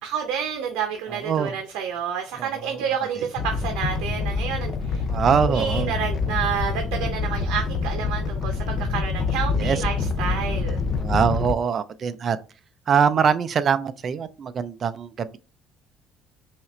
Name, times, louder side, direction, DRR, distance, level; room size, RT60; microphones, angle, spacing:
voice 1, 0.0-5.0 5.4-10.8, right 7 dB, 80° right, 0.7 m, -29 dB
voice 2, 1.1-1.6 2.4-2.5 5.1-5.9 9.6-9.8 11.0-12.4 12.9-15.4, right 7 dB, 35° right, 0.4 m, -23 dB
Animal, 3.4-11.5, left 4 dB, 40° left, 0.5 m, -26 dB
5.6 x 2.5 x 3.1 m
cardioid pair, 145°, 0 cm